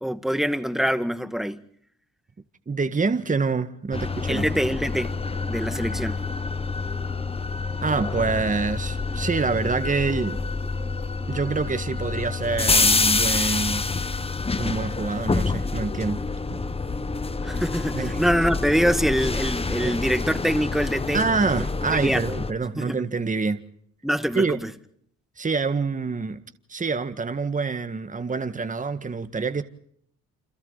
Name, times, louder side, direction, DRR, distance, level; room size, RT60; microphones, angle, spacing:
voice 1, 0.0-1.6 4.3-5.1 5.5-6.2 17.4-21.2 21.6-21.7 21.9-22.2 22.8-23.0 24.0-24.7, equal, ahead, 1.8 m, -24 dB
voice 2, 2.7-4.5 7.8-10.5 11.3-13.9 14.6-16.2 16.5-16.6 17.9-18.2 19.8-20.0 21.1-23.6 24.4-24.6 25.4-26.4 26.7-29.6, right 4 dB, 25° right, 1.8 m, -26 dB
sound 1, 3.9-22.5, left 3 dB, 20° left, 1.2 m, -27 dB
29.5 x 26.5 x 4.1 m
cardioid pair, 90°, 30 cm